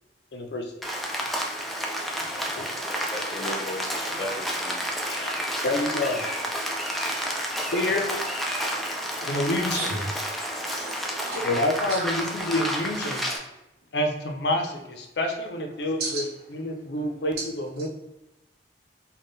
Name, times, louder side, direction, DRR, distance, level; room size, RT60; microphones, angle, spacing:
voice 1, 0.3-0.7 2.2-2.3 2.5-2.7 5.6-6.3 7.7-8.1 9.2-10.0 11.4-13.3 13.9-17.9, left 1 dB, 65° left, 4 dB, 0.6 m, -28 dB
Rain, 0.8-13.4, equal, ahead, 0.4 m, -30 dB
voice 2, 3.1-5.3 6.2-6.3, left 1 dB, 25° left, -4 dB, 1.0 m, -36 dB
voice 3, 10.8-11.4 12.0-12.1 16.0-16.2, right 3 dB, 55° right, -6 dB, 0.8 m, -33 dB
3.6 x 2.2 x 3.9 m, 0.91 s
head